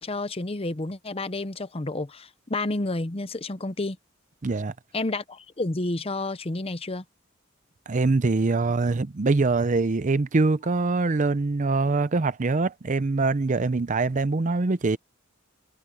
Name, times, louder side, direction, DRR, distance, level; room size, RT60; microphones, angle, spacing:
voice 1, 0.0-4.0 4.9-7.0, left 2 dB, 30° left, 0.8 m, -30 dB
voice 2, 4.4-4.7 7.9-15.0, right 3 dB, 40° right, 0.6 m, -23 dB
head